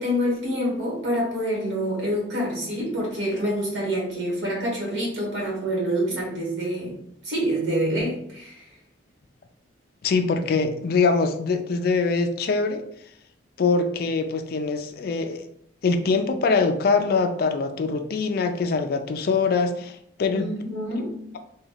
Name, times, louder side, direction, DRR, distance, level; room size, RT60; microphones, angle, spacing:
voice 1, 0.0-7.0 7.2-8.7 20.3-21.3, equal, 65° right, -3 dB, 1.4 m, -27 dB
voice 2, 10.0-12.8 13.6-15.4 15.8-20.5, left 4 dB, 50° left, 7 dB, 0.3 m, -23 dB
3.0 x 2.3 x 3.9 m, 0.69 s
head